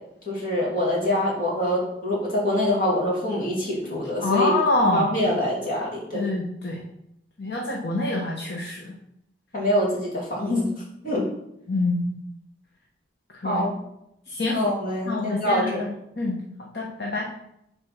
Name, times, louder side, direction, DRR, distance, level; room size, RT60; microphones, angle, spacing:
voice 1, 0.3-4.5 4.9-6.3 9.5-10.7 11.0-11.2 13.4-13.7 14.5-15.8, left 1 dB, 50° left, -4 dB, 2.8 m, -25 dB
voice 2, 4.2-5.3 6.1-6.8 7.4-8.9 11.7-12.1 13.4-13.7 14.3-14.6 15.1-15.9 16.2-16.4 16.7-17.3, left 2 dB, 65° left, -1 dB, 1.1 m, -26 dB
7.0 x 4.3 x 5.9 m, 0.79 s
head